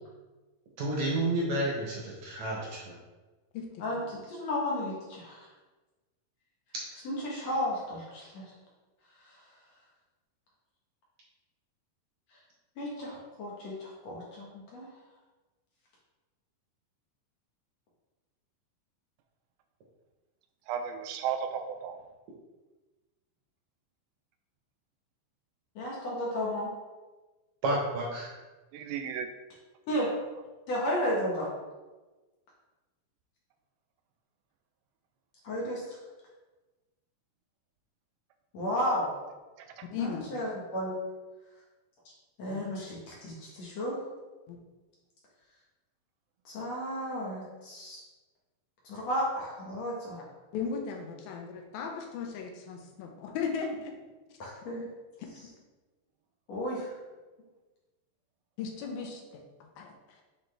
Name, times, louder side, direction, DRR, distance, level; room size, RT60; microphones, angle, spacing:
voice 1, 0.8-3.0 6.7-6.8 27.6-28.3, right 1 dB, 65° right, -3 dB, 1.9 m, -30 dB
voice 2, 3.8-5.5 7.1-8.4 9.3-9.4 12.8-14.9 25.8-26.7 29.9-30.2 30.7-31.5 35.4-36.0 38.5-39.1 40.0-41.0 42.4-44.1 46.5-48.0 48.8-50.2 54.4-54.9 56.5-57.0, equal, 60° left, -4 dB, 2.0 m, -33 dB
voice 3, 20.7-22.0 28.7-29.3 39.6-39.9, right 8 dB, 85° right, 7 dB, 2.4 m, -35 dB
voice 4, 39.9-40.2 42.5-42.6 44.5-44.6 50.5-53.9 54.6-54.7 58.6-60.2, left 5 dB, 90° left, 2 dB, 2.7 m, -37 dB
7.9 x 4.0 x 3.3 m, 1.2 s
omnidirectional pair, 4.1 m